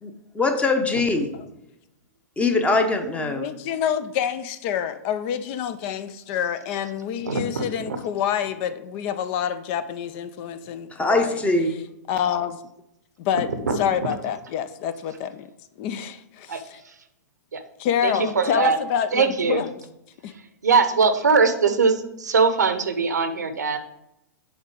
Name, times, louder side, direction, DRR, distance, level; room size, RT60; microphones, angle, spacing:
voice 1, 0.0-1.3 2.4-3.5 10.9-11.8, left 3 dB, 15° left, 6 dB, 0.9 m, -22 dB
voice 2, 3.2-11.4 12.1-12.7 13.2-15.5 15.8-16.8 17.8-19.7 20.2-20.3, left 9 dB, 45° left, 12 dB, 0.5 m, -27 dB
voice 3, 7.2-8.0 13.7-14.1 16.5-16.6 17.5-17.6 18.0-18.8 19.1-19.6 20.6-23.8, right 5 dB, 85° right, 9 dB, 0.8 m, -21 dB
7.2 x 4.0 x 4.8 m, 0.83 s
hypercardioid pair, 105°, 9 cm